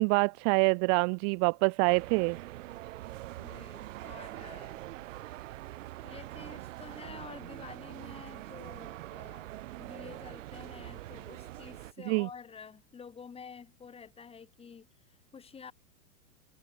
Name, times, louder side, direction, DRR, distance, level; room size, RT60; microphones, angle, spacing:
voice 1, 0.0-2.4 12.1-12.3, right 40 dB or more, 30° right, 1.0 m, -26 dB
sound 1, 1.9-11.9, right 16 dB, 55° right, 3.5 m, -44 dB
voice 2, 3.4-4.8 6.0-9.5 9.8-15.7, left 6 dB, 10° left, 6.8 m, -49 dB
hypercardioid pair, 150°, 46 cm